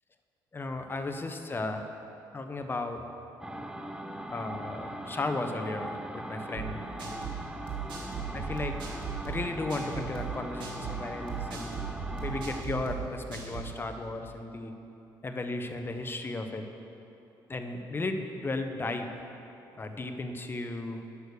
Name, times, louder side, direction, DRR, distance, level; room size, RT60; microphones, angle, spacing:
voice 1, 0.5-1.8 2.3-3.0 4.3-7.3 8.3-8.9 9.2-11.8 12.2-14.7 15.2-16.7 17.5-19.1 19.7-21.0, left 2 dB, 25° left, 5 dB, 1.0 m, -35 dB
sound 1, 3.4-12.6, right 1 dB, 10° right, 0.8 m, -40 dB
sound 2, 6.5-13.8, right 6 dB, 75° right, 2.1 m, -38 dB
11.5 x 6.4 x 6.9 m, 2.9 s
cardioid pair, 80°, 8 cm